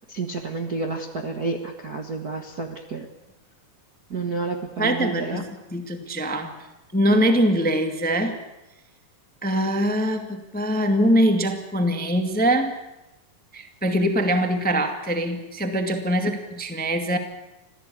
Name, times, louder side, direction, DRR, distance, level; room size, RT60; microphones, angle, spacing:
voice 1, 0.1-3.1 4.1-5.4, right 3 dB, 40° right, 2 dB, 1.4 m, -30 dB
voice 2, 4.8-6.5 6.9-8.4 9.4-12.7 13.5-17.2, equal, 5° left, 6 dB, 1.2 m, -23 dB
26.0 x 16.5 x 8.6 m, 0.98 s
omnidirectional pair, 3.8 m